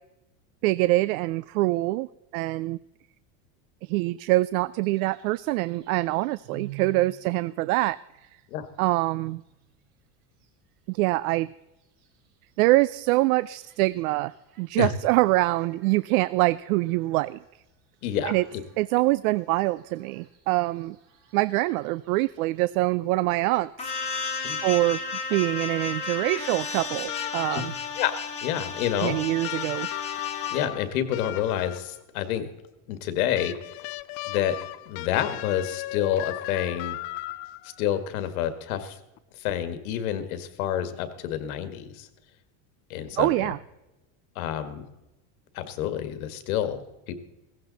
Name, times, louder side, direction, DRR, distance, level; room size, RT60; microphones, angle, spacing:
voice 1, 0.6-2.1 2.3-2.8 3.8-8.0 8.8-9.4 10.9-11.5 12.6-14.3 14.6-17.4 18.2-18.5 18.8-21.0 21.3-23.9 24.6-25.0 25.3-27.7 29.0-29.9 43.2-43.6, right 19 dB, 80° right, 18 dB, 0.5 m, -24 dB
sound 1, 4.8-23.6, right 8 dB, 60° right, 3.1 m, -52 dB
voice 2, 18.0-18.6 24.4-24.6 27.5-27.6 28.0-28.2 28.4-29.2 30.5-32.5 32.9-33.5 34.3-34.6 34.9-37.0 37.8-39.0 39.4-42.1 42.9-43.5 44.4-44.9 45.5-47.1, left 10 dB, 85° left, 10 dB, 1.9 m, -28 dB
sound 2, 23.8-30.7, left 4 dB, 15° left, 1.3 m, -33 dB
sound 3, 27.1-28.0 29.4-32.0 33.4-37.8 39.2-39.3, left 17 dB, 55° left, 0.6 m, -36 dB
16.5 x 15.0 x 4.1 m, 0.97 s
cardioid pair, 170°, 42 cm